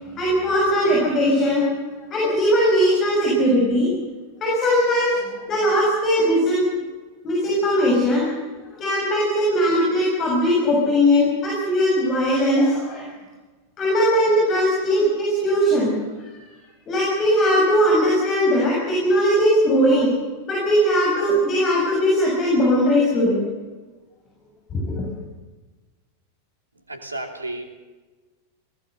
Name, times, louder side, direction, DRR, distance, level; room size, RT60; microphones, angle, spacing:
voice 1, 0.0-1.7 2.1-3.9 4.4-6.7 7.2-8.3 8.8-13.1 13.8-16.0 16.2-16.4 16.9-20.1 20.5-23.4 24.7-25.0, equal, 30° left, -3 dB, 7.1 m, -19 dB
voice 2, 26.9-27.7, right 1 dB, 80° right, 4 dB, 3.0 m, -32 dB
24.0 x 19.0 x 6.7 m, 1.3 s
figure-of-eight pair, 90°, 0 cm